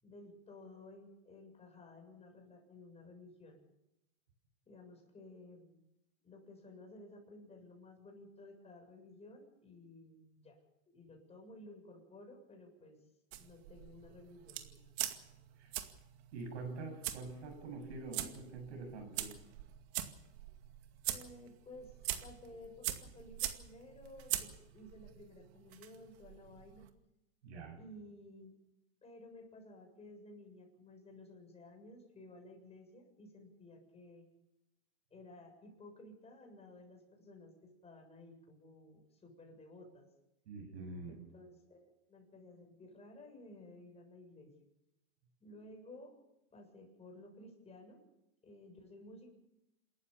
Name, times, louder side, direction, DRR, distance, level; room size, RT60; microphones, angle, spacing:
voice 1, 0.0-3.6 4.7-5.8 6.2-10.6 10.9-13.0 13.4-14.9 21.0-26.9 27.8-28.5 29.0-34.3 35.1-40.1 41.1-44.5 45.4-46.2 46.5-48.0 48.4-49.3, left 2 dB, 20° left, 2 dB, 7.3 m, -55 dB
sound 1, 13.3-26.9, right 13 dB, 65° right, 2.3 m, -43 dB
voice 2, 16.3-19.3 27.4-27.8 40.5-41.1, right 3 dB, 85° right, 5 dB, 7.8 m, -45 dB
27.5 x 14.0 x 7.1 m, 0.88 s
supercardioid pair, 130°, 33 cm